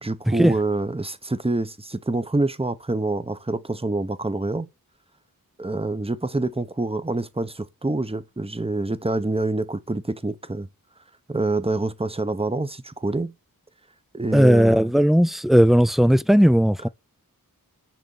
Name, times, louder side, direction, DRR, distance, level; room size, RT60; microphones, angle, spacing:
voice 1, 0.0-4.7 5.6-10.7 11.3-13.3 14.1-14.9, right 2 dB, 15° right, 0.9 m, -26 dB
voice 2, 14.3-16.9, equal, ahead, 0.5 m, -16 dB
10.5 x 3.7 x 7.1 m
wide cardioid pair, 40°, 36 cm